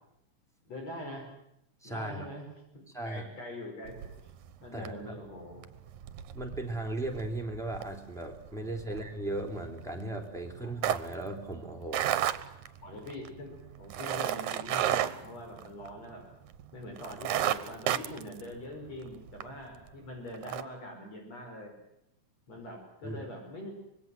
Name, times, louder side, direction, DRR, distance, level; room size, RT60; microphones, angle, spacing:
voice 1, 0.7-1.3 1.8-2.4 2.7-3.9 4.6-5.6 8.9-9.0 10.6-10.7 12.8-16.2 16.7-21.7 22.5-23.7, left 1 dB, 55° left, 2 dB, 6.3 m, -43 dB
voice 2, 1.8-2.3 2.9-3.3 4.7-5.2 6.3-12.1 12.5-12.7 23.0-23.2, right 1 dB, ahead, 1 dB, 3.5 m, -37 dB
sound 1, 3.9-4.5 4.8-5.1 5.5-16.2 16.5-16.6 17.0-19.5 19.9-20.0 20.3-20.6, right 11 dB, 75° right, 2.4 m, -33 dB
25.5 x 22.0 x 7.8 m, 0.81 s
omnidirectional pair, 3.5 m